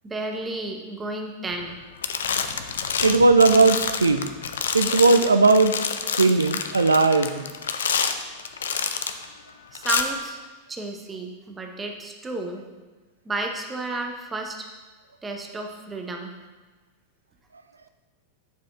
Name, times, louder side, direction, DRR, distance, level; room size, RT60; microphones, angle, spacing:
voice 1, 0.0-1.8 9.7-10.4 10.7-12.6 13.3-14.7 15.2-16.4, right 2 dB, 15° right, 3 dB, 0.8 m, -32 dB
sound 1, 1.5-1.8 2.0-9.2 9.7-10.0, left 6 dB, 65° left, 0.4 m, -28 dB
voice 2, 3.0-4.3 4.7-5.9 6.2-7.4, right 3 dB, 75° right, 10 dB, 0.4 m, -18 dB
9.0 x 4.9 x 3.5 m, 1.2 s
figure-of-eight pair, 90°, 0 cm